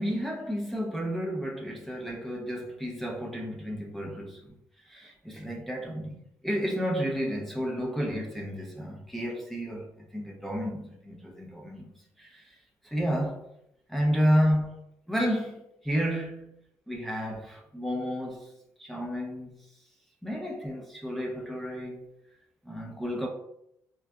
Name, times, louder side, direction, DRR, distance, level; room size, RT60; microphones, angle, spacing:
voice 1, 0.0-4.5 4.8-6.1 6.4-12.6 12.8-13.4 13.9-14.8 15.1-16.6 16.9-18.5 18.8-19.6 20.2-22.1 22.6-23.3, equal, 5° left, 0.6 m, -31 dB
3.8 x 2.4 x 2.2 m
cardioid pair, 95°, 8 cm